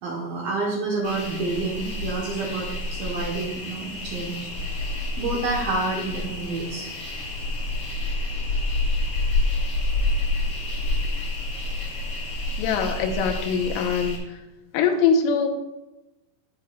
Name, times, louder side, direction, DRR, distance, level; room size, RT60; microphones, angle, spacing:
voice 1, 0.0-4.5 5.2-6.9, right 3 dB, 70° right, -3 dB, 2.3 m, -28 dB
sound 1, 1.0-14.2, left 2 dB, 50° left, 1.4 m, -28 dB
voice 2, 12.6-14.4 14.7-15.5, left 5 dB, 90° left, 4 dB, 3.5 m, -23 dB
16.0 x 5.5 x 2.3 m, 0.99 s
omnidirectional pair, 5.6 m